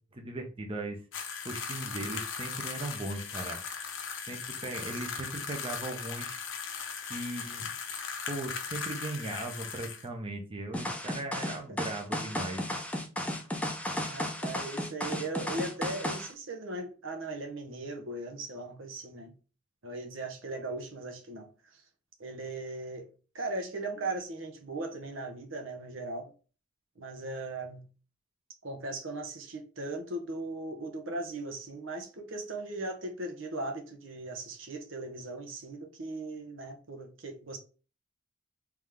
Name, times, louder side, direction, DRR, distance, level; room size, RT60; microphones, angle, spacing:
voice 1, 0.1-1.0 1.4-3.6 4.3-6.4 7.1-7.7 8.3-12.6, right 2 dB, 30° right, 0.7 m, -38 dB
sound 1, 1.1-10.1, left 6 dB, 70° left, 0.8 m, -38 dB
sound 2, 10.7-16.3, left 1 dB, 5° left, 0.6 m, -34 dB
voice 2, 11.3-11.8 14.0-19.3 19.8-21.5 22.2-23.1 23.3-26.3 27.0-27.9 28.6-37.6, right 2 dB, 75° right, 0.9 m, -38 dB
3.6 x 3.2 x 3.5 m
head